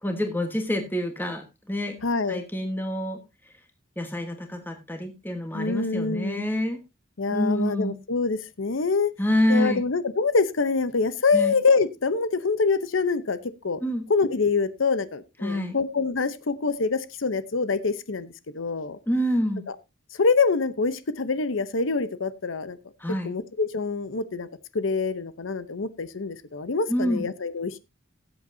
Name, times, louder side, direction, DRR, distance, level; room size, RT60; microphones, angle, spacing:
voice 1, 0.0-2.0 2.3-3.2 4.0-6.8 7.3-8.0 9.2-9.8 11.3-11.5 13.8-14.0 15.4-15.8 19.1-19.7 23.0-23.3 26.9-27.2, equal, 10° left, 5 dB, 1.3 m, -27 dB
voice 2, 2.0-2.4 5.5-6.4 7.2-9.1 9.5-13.8 14.1-19.0 19.7-19.8 20.1-22.8 23.2-24.5 24.7-27.8, left 4 dB, 80° left, 14 dB, 0.8 m, -25 dB
17.5 x 7.9 x 2.7 m, 0.24 s
head